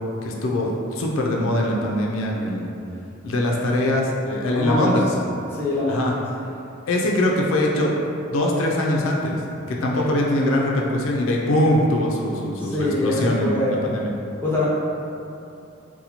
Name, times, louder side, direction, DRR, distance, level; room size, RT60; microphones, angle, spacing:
voice 1, 0.2-2.7 3.2-5.1 5.9-6.1 6.9-7.9 8.3-9.4 9.7-14.1, left 1 dB, 85° left, -2 dB, 0.4 m, -22 dB
voice 2, 4.6-4.9 5.5-6.1 9.9-10.1 12.6-13.9 14.4-14.7, left 2 dB, 10° left, -8 dB, 0.6 m, -24 dB
4.1 x 2.2 x 2.8 m, 2.7 s
head